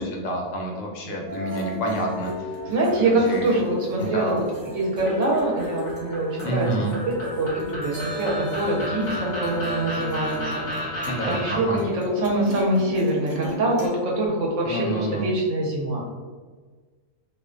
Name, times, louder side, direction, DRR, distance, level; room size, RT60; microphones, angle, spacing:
voice 1, 0.0-2.5 3.0-3.6 4.0-4.4 6.4-6.9 11.1-11.8 14.6-15.3, right 1 dB, 75° left, 0 dB, 0.9 m, -28 dB
sound 1, 1.3-13.9, equal, 35° right, 0.3 m, -36 dB
voice 2, 2.7-10.6 11.3-16.0, right 1 dB, 70° right, -2 dB, 0.9 m, -24 dB
sound 2, 5.0-11.5, equal, 50° left, 0.6 m, -33 dB
2.4 x 2.1 x 2.4 m, 1.5 s
omnidirectional pair, 1.4 m